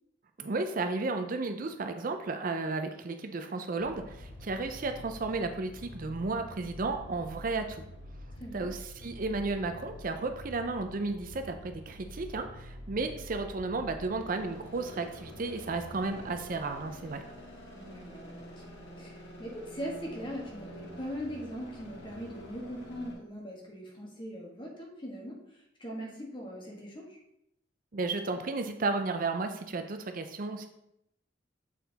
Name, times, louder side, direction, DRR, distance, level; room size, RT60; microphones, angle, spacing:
voice 1, 0.4-7.8 8.5-17.2 27.9-30.7, right 3 dB, 45° right, 7 dB, 0.5 m, -33 dB
sound 1, 3.8-23.1, left 1 dB, 60° left, 1.9 m, -47 dB
voice 2, 16.1-16.4 17.7-27.2, equal, 25° left, -1 dB, 1.5 m, -41 dB
7.4 x 4.4 x 4.0 m, 0.79 s
head